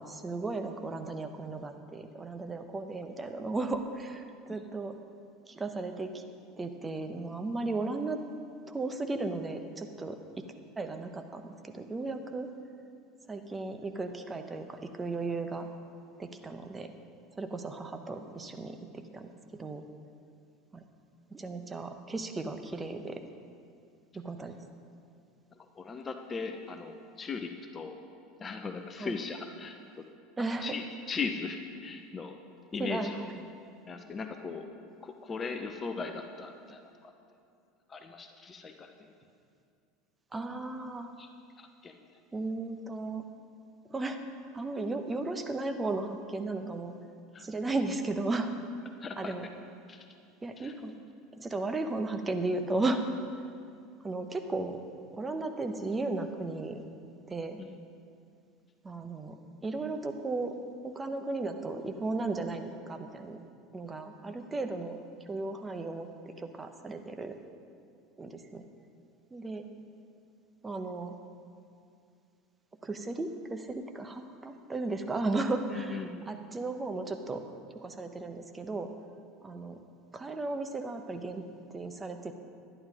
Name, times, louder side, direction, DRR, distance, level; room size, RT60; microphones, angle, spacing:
voice 1, 0.0-5.0 5.5-6.2 6.6-8.2 8.7-10.2 10.8-12.5 13.3-15.7 16.2-16.9 17.4-19.8 20.7-20.8 21.3-23.3 24.1-24.6 29.0-29.1 30.4-30.7 32.8-33.1 40.3-41.1 42.3-43.2 43.9-44.2 44.5-47.0 47.4-48.5 49.2-49.4 50.4-50.9 51.3-53.0 54.0-54.8 55.1-56.8 57.3-57.6 58.8-60.6 60.8-63.4 63.7-65.0 65.3-66.1 66.4-67.4 68.2-68.6 69.3-69.7 70.6-71.1 72.8-77.5 77.7-78.9 79.4-79.8 80.1-81.5 81.7-82.3, right 3 dB, 20° right, 7 dB, 1.1 m, -35 dB
voice 2, 25.5-28.0 28.4-30.1 30.6-32.4 32.7-33.2 33.9-34.7 35.0-37.1 37.9-39.1 41.2-41.3 41.6-42.0 47.3-47.5 49.0-49.3 49.9-50.1 50.6-50.7 57.6-57.8 64.2-64.4 75.7-76.5, left 4 dB, 30° left, 6 dB, 0.9 m, -39 dB
11.5 x 11.0 x 5.0 m, 2.4 s
hypercardioid pair, 80°, 0 cm